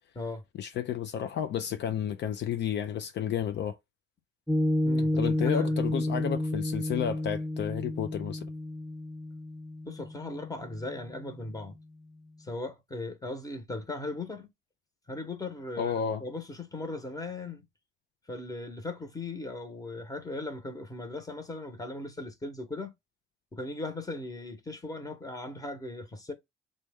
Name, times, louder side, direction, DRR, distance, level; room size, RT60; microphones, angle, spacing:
voice 1, 0.6-3.8 5.2-8.5 15.8-16.2, left 9 dB, 60° left, 0.4 m, -31 dB
Piano, 4.5-11.2, left 1 dB, ahead, 0.4 m, -31 dB
voice 2, 4.8-5.8 9.8-11.8 12.4-14.5 15.1-17.7 18.3-22.9 23.5-26.3, left 2 dB, 20° left, 0.9 m, -38 dB
3.0 x 2.3 x 3.4 m
cardioid pair, 90°, 20 cm